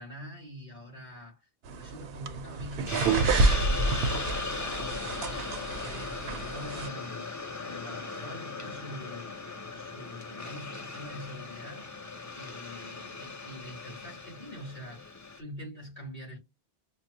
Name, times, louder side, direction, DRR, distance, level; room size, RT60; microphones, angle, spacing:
voice 1, 0.0-7.3 7.6-9.3 9.7-12.0 12.3-15.1 15.4-16.4, equal, 45° left, 2.7 m, -45 dB
sound 1, 1.7-6.9, right 3 dB, 70° right, 0.8 m, -29 dB
Hiss, 2.9-15.4, left 4 dB, 25° left, 0.5 m, -38 dB
5.9 x 2.0 x 2.7 m
omnidirectional pair, 1.1 m